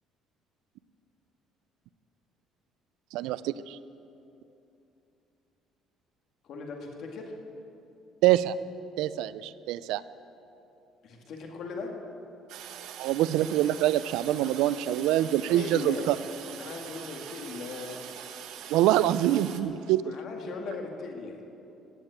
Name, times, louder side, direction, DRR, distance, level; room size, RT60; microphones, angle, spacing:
voice 1, 3.1-3.8 8.2-8.6 9.0-10.0 13.0-16.2 18.7-20.1, right 13 dB, 85° right, 16 dB, 0.4 m, -25 dB
voice 2, 6.4-7.4 11.0-11.9 15.5-16.1 16.6-18.0 20.0-21.4, left 4 dB, 55° left, 2 dB, 2.1 m, -38 dB
Toilet flush, 12.5-19.6, right 9 dB, 70° right, 1.0 m, -43 dB
16.0 x 9.0 x 8.1 m, 2.8 s
cardioid pair, 145°, 0 cm